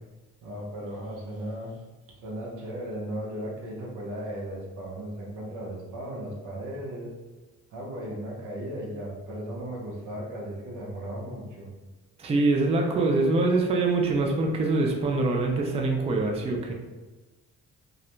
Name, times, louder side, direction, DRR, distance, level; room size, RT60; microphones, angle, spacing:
voice 1, 0.4-1.8 2.2-7.1 7.7-11.7, right 1 dB, 90° right, -2 dB, 0.8 m, -36 dB
voice 2, 12.2-16.7, right 3 dB, 20° right, 1 dB, 0.3 m, -24 dB
2.4 x 2.0 x 2.9 m, 1.2 s
cardioid pair, 110°, 30 cm